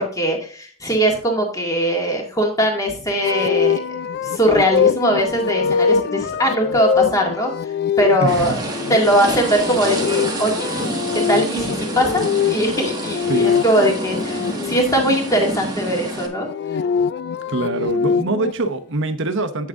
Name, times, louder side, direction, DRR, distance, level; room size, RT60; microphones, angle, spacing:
voice 1, 0.0-4.0 4.2-7.5 8.0-8.6 8.9-10.7 11.1-16.5, equal, 15° left, 1 dB, 1.9 m, -20 dB
sound 1, 3.2-15.2 16.3-18.5, left 6 dB, 50° left, 0.3 m, -23 dB
voice 2, 8.2-8.6 13.3-13.5 17.5-19.7, right 2 dB, 55° right, 9 dB, 0.9 m, -23 dB
sound 2, 8.3-16.3, right 2 dB, 15° right, 1.3 m, -28 dB
8.6 x 6.3 x 3.6 m, 0.43 s
head